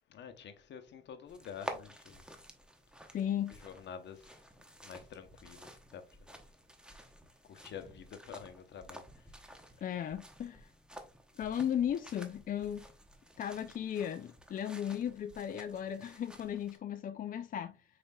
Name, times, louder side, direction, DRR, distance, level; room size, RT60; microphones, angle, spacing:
voice 1, 0.1-2.2 3.6-4.4 4.8-6.4 7.5-9.2, left 7 dB, 65° left, 0.8 m, -48 dB
Walking in forest, 1.3-16.8, equal, 5° right, 0.8 m, -51 dB
voice 2, 3.1-3.6 9.8-10.7 11.4-12.9 13.4-17.8, left 9 dB, 45° left, 0.4 m, -36 dB
5.0 x 4.2 x 2.2 m
cardioid pair, 90°, 20 cm